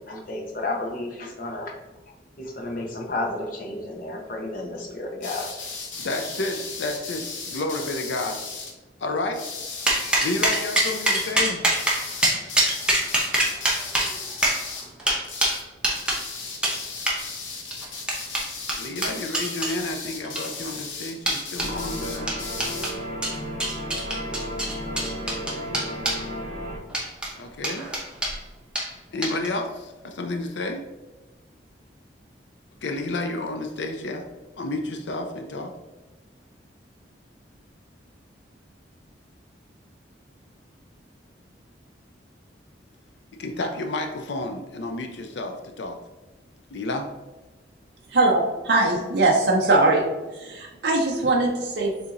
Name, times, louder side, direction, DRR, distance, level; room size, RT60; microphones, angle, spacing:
voice 1, 0.0-1.7 2.4-5.6, left 2 dB, 45° left, 0 dB, 0.9 m, -32 dB
sound 1, 5.2-8.7 9.3-11.3 11.7-14.9 15.2-15.6 15.9-22.9, left 4 dB, 90° left, 0.9 m, -36 dB
voice 2, 6.0-8.4 9.0-9.4 10.2-11.6 18.7-22.3 27.3-27.9 29.1-30.8 32.8-34.3 34.6-35.7 43.4-46.0 46.7-47.1, left 2 dB, 70° left, 4 dB, 0.5 m, -30 dB
sound 2, 9.9-16.2 16.6-16.8 17.1-17.2 17.7-19.7 20.2-20.7 21.3-21.7 22.3-22.9 23.2-26.2 26.9-27.3 27.6-28.4 28.7-28.9 29.2-29.5, right 1 dB, 5° right, 0.7 m, -24 dB
sound 3, 21.6-26.8, equal, 40° right, 1.2 m, -33 dB
voice 3, 48.1-50.0 50.3-52.1, right 2 dB, 60° right, -2 dB, 0.6 m, -21 dB
6.8 x 2.8 x 2.5 m, 1.2 s
head